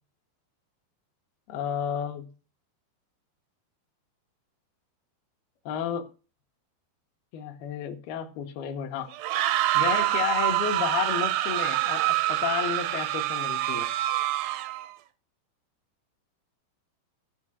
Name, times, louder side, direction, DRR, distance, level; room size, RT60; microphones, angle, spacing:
voice 1, 1.5-2.3 5.7-6.1 7.3-9.1 9.7-13.9, left 8 dB, 75° left, 5 dB, 2.9 m, -31 dB
sound 1, 9.1-14.9, right 15 dB, 80° right, 2.2 m, -26 dB
15.0 x 5.2 x 6.2 m, 0.36 s
omnidirectional pair, 4.8 m